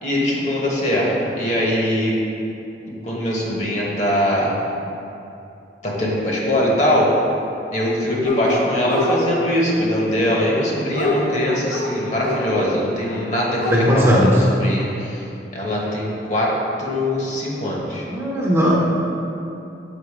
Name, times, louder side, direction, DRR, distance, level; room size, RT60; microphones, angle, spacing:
voice 1, 0.0-2.1 2.9-4.5 5.8-7.1 7.7-15.2 15.5-16.5 16.8-18.1, left 1 dB, 40° left, -4 dB, 1.1 m, -22 dB
Dog, 8.2-9.2 10.3-12.4 13.1-13.2 13.4-14.2, left 3 dB, 85° left, 0.9 m, -25 dB
voice 2, 13.7-14.4 18.1-18.7, equal, 15° right, -5 dB, 0.8 m, -17 dB
7.1 x 3.8 x 5.0 m, 2.8 s
head